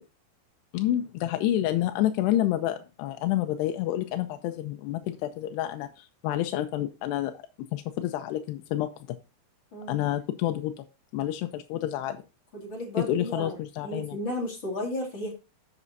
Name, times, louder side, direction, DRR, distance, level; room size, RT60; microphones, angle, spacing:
voice 1, 0.7-7.4 7.7-9.2 9.9-10.8 11.1-12.2 13.1-14.2, left 13 dB, 90° left, 6 dB, 2.8 m, -29 dB
voice 2, 9.7-10.0 12.6-13.5 13.8-15.3, left 1 dB, 35° left, 0 dB, 2.5 m, -33 dB
11.0 x 7.3 x 2.7 m, 0.29 s
omnidirectional pair, 4.7 m